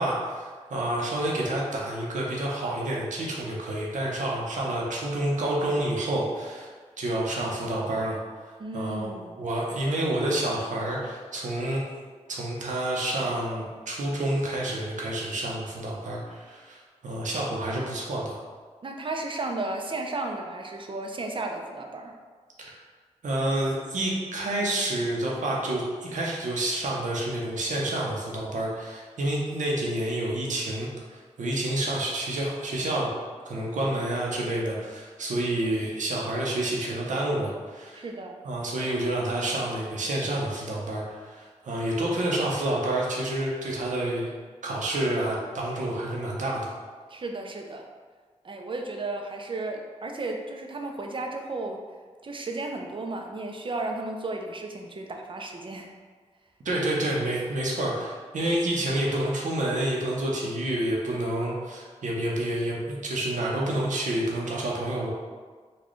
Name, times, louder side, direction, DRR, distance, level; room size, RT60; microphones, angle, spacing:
voice 1, 0.0-6.7 7.0-8.2 8.7-9.1 9.4-11.9 12.3-18.4 22.6-22.7 23.2-33.1 33.5-38.0 38.4-44.3 44.6-46.7 56.6-65.1, right 1 dB, 85° right, -3 dB, 0.7 m, -29 dB
voice 2, 8.6-9.4 9.8-9.9 18.8-22.1 38.0-38.4 47.1-47.8 48.4-51.8 52.2-55.9, right 2 dB, 45° right, 2 dB, 0.5 m, -34 dB
4.0 x 2.3 x 3.1 m, 1.5 s
cardioid pair, 65°, 12 cm